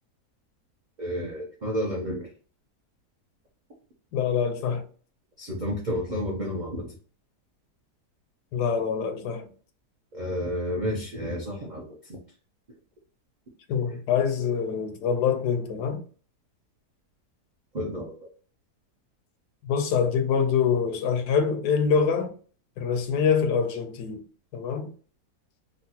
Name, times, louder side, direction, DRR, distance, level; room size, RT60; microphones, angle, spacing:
voice 1, 1.0-2.3 5.4-6.9 10.1-11.8 12.1-12.2 17.7-18.1, equal, 65° right, 0.4 m, -30 dB
voice 2, 4.1-4.9 8.5-9.5 13.7-16.0 19.6-22.3 22.8-24.2 24.5-24.9, left 6 dB, 80° left, 1.1 m, -25 dB
3.8 x 2.0 x 2.8 m
omnidirectional pair, 1.8 m